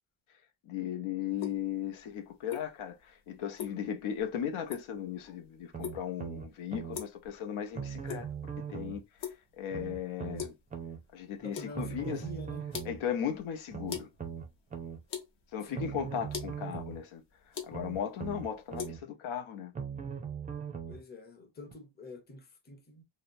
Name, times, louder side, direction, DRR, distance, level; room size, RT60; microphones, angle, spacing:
voice 1, 0.6-8.3 8.7-10.5 11.1-12.2 12.8-14.1 15.5-17.2 17.6-19.7, left 9 dB, 90° left, 0.7 m, -37 dB
dripping water, 1.3-18.9, left 8 dB, 60° left, 0.9 m, -45 dB
sound 1, 5.7-7.0 7.7-9.0 9.7-11.0 11.7-13.0 13.7-15.0 15.7-17.0 17.7-19.0 19.7-21.0 21.7-21.8, right 7 dB, 20° right, 0.4 m, -40 dB
voice 2, 11.4-12.6 15.6-15.9 20.9-23.0, left 1 dB, 20° left, 0.6 m, -46 dB
2.8 x 2.0 x 2.5 m
cardioid pair, 140°, 48 cm